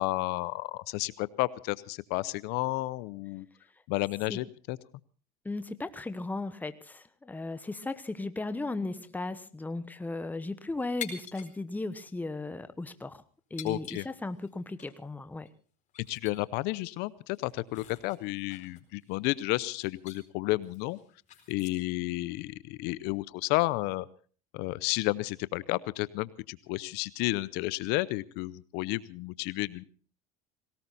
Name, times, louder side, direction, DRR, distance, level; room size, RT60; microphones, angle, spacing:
voice 1, 0.0-3.5 3.9-4.8 13.6-14.1 16.1-21.0 21.5-24.1 24.5-29.8, left 20 dB, 70° left, 19 dB, 0.7 m, -32 dB
voice 2, 5.4-13.2 13.5-15.5, left 2 dB, 10° left, 11 dB, 1.1 m, -36 dB
sound 1, 11.0-11.5 11.8-11.9 12.7-12.9 13.6-14.5 14.8-14.9 15.5-15.6 15.9-16.4 16.8-16.9 17.3-19.5 19.8-20.2 20.6-22.0, left 8 dB, 45° left, 4.5 m, -46 dB
18.5 x 18.5 x 4.1 m, 0.41 s
supercardioid pair, 110°, 18 cm